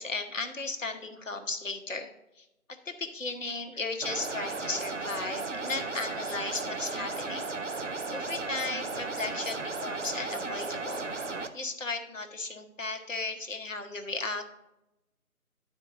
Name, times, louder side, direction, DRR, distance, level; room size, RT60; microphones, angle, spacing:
voice 1, 0.0-2.1 2.4-2.5 2.8-7.5 8.1-11.1 11.5-14.5, left 3 dB, 55° left, 5 dB, 1.1 m, -35 dB
sound 1, 4.0-11.5, right 3 dB, 55° right, 0.6 m, -35 dB
11.5 x 4.5 x 3.8 m, 0.91 s
figure-of-eight pair, 175°, 44 cm